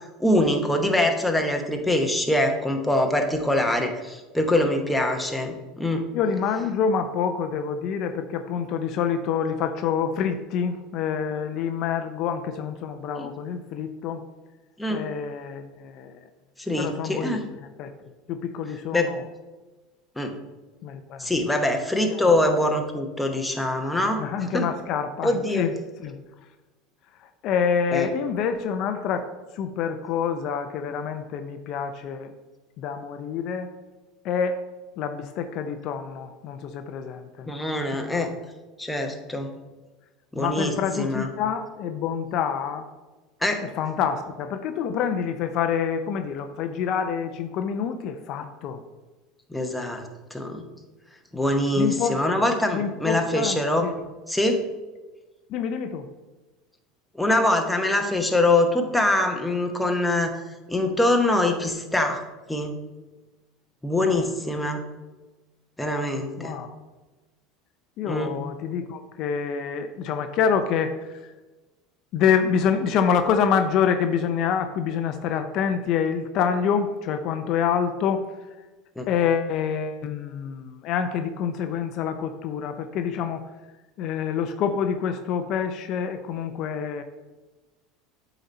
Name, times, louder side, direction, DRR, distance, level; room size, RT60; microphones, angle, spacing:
voice 1, 0.2-6.1 13.2-13.3 14.8-15.0 16.6-17.4 18.9-19.1 20.2-20.3 21.2-24.2 24.5-24.7 25.2-25.7 27.9-28.1 37.5-38.3 38.8-39.5 40.3-41.3 43.4-43.6 49.5-50.0 50.3-50.6 51.3-53.9 54.3-54.7 57.1-60.4 60.7-62.2 62.5-62.7 63.8-64.8 65.8-66.6 68.0-68.3 79.0-79.1, left 1 dB, 5° left, 3 dB, 1.0 m, -24 dB
voice 2, 6.1-14.2 14.9-16.2 16.8-17.4 17.8-17.9 18.3-19.3 20.8-21.3 22.1-22.5 24.2-25.7 26.0-26.2 27.2-32.3 32.8-33.7 34.2-34.6 35.0-37.5 37.9-38.3 40.4-42.9 43.7-48.8 51.8-52.2 52.7-53.9 55.5-56.1 64.0-64.3 66.4-66.7 68.0-71.3 72.1-78.2 79.1-83.4 84.0-87.0, left 7 dB, 55° left, 8 dB, 0.5 m, -27 dB
7.8 x 4.1 x 4.2 m, 1.2 s
supercardioid pair, 110°, 0 cm